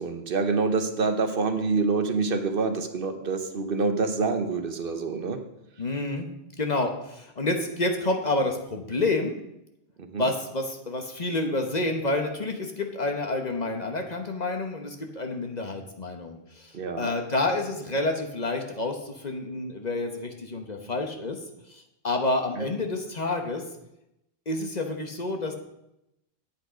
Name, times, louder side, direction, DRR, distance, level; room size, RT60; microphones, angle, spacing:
voice 1, 0.0-5.4 10.0-10.3 16.7-17.1 22.6-22.7, right 4 dB, 60° right, 8 dB, 1.1 m, -26 dB
voice 2, 5.8-6.3 6.6-9.4 10.2-21.4 21.7-23.6 24.5-25.6, left 2 dB, 45° left, 4 dB, 1.1 m, -29 dB
8.7 x 8.5 x 5.0 m, 0.85 s
omnidirectional pair, 1.1 m